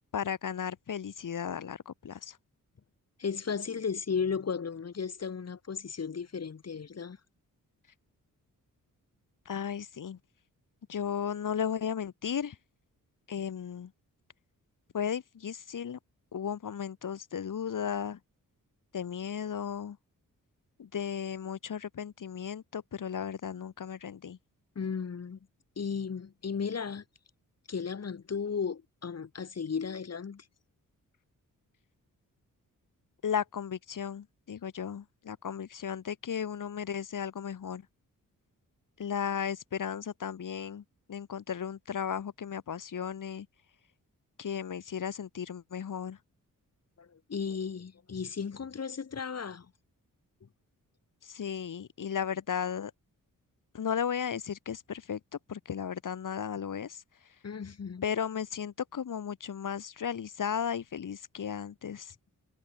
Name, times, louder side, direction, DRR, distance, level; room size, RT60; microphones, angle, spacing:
voice 1, 0.1-2.4 9.4-10.2 10.9-12.6 13.3-13.9 14.9-16.0 16.3-18.2 18.9-20.0 20.8-24.4 33.2-37.9 39.0-43.5 44.4-46.2 51.2-52.9 53.7-57.0 58.0-62.1, left 8 dB, 65° left, 6.6 m, -35 dB
voice 2, 3.2-7.2 24.7-25.4 25.8-27.0 27.7-30.4 47.0-49.7 57.4-58.0, left 6 dB, 50° left, 6.5 m, -35 dB
wide cardioid pair, 125°, 33 cm